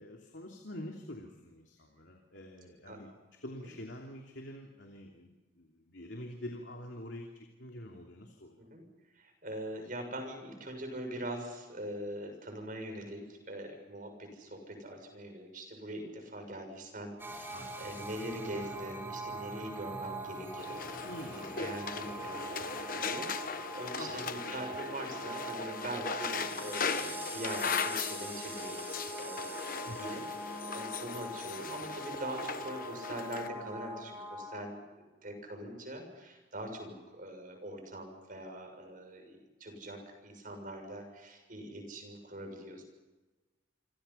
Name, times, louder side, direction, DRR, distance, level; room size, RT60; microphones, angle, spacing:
voice 1, 0.0-3.1 3.4-8.7 17.5-17.8 21.0-21.4 24.0-24.3 29.8-30.1, left 1 dB, 70° left, 2 dB, 3.1 m, -46 dB
voice 2, 9.1-42.8, right 1 dB, 45° right, 5 dB, 6.9 m, -43 dB
sound 1, 17.2-34.6, right 2 dB, 10° right, 3.6 m, -43 dB
sound 2, 20.6-33.5, left 5 dB, 45° left, 1.2 m, -38 dB
28.5 x 25.5 x 5.8 m, 1.2 s
head